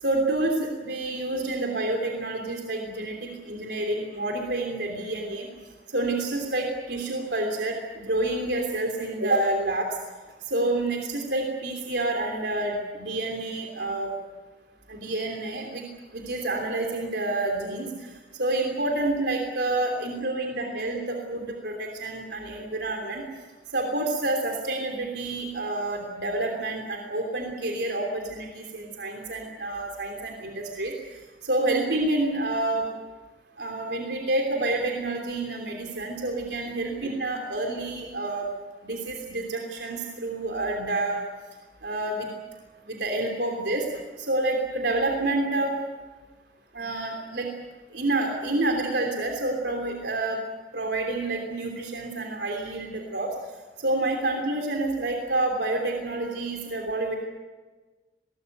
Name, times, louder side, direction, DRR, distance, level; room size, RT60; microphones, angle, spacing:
voice 1, 0.0-5.5 5.9-9.9 10.5-14.1 14.9-15.8 16.1-18.1 18.4-23.2 23.7-30.9 31.4-32.8 33.6-38.5 38.8-41.2 41.8-42.3 42.9-43.9 44.2-45.8 46.7-47.5 47.9-50.4 50.7-53.3 53.8-57.2, right 2 dB, 75° right, 2 dB, 3.2 m, -28 dB
22.0 x 19.0 x 9.3 m, 1.3 s
head